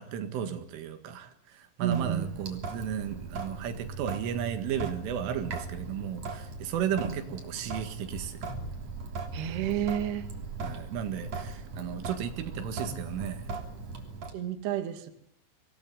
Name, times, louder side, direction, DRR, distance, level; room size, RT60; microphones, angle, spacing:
voice 1, 0.0-8.4 10.6-13.5, right 8 dB, 85° right, 8 dB, 4.4 m, -34 dB
voice 2, 1.8-2.3 7.1-7.2 9.3-10.2 14.3-15.1, right 10 dB, 60° right, 8 dB, 4.0 m, -30 dB
Sink (filling or washing) / Drip, 1.9-14.3, right 3 dB, 40° right, 4.0 m, -39 dB
25.5 x 18.5 x 9.5 m, 0.76 s
omnidirectional pair, 5.6 m